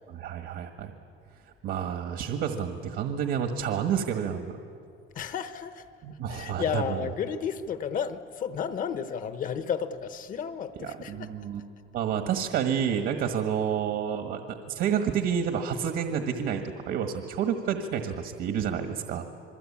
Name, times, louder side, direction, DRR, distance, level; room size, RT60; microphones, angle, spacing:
voice 1, 0.1-0.9 1.6-4.6 6.0-7.1 10.8-11.6 11.9-19.3, right 8 dB, 65° right, 6 dB, 1.6 m, -29 dB
voice 2, 5.1-5.8 6.3-11.3, left 7 dB, 40° left, 11 dB, 1.0 m, -32 dB
27.5 x 22.0 x 8.7 m, 2.4 s
cardioid pair, 180°, 21 cm